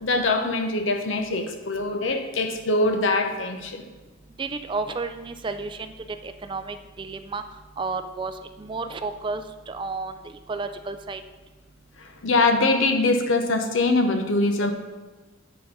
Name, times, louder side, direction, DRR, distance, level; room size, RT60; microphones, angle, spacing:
voice 1, 0.0-3.9 12.0-14.7, left 2 dB, 80° left, 5 dB, 0.9 m, -23 dB
voice 2, 4.4-5.9 6.2-7.4 7.8-11.2, right 3 dB, 25° right, 9 dB, 0.3 m, -32 dB
9.4 x 3.9 x 5.4 m, 1.2 s
head